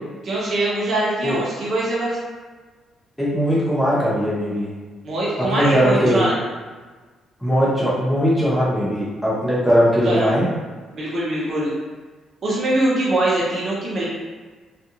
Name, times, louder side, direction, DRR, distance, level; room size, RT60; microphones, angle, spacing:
voice 1, 0.2-2.2 5.0-6.3 10.0-10.3 10.9-11.8 12.4-14.0, right 1 dB, 45° right, -6 dB, 0.7 m, -22 dB
voice 2, 3.2-4.7 5.5-6.2 7.4-10.4, equal, 5° left, -9 dB, 0.9 m, -19 dB
2.4 x 2.4 x 2.8 m, 1.4 s
cardioid pair, 125°, 0 cm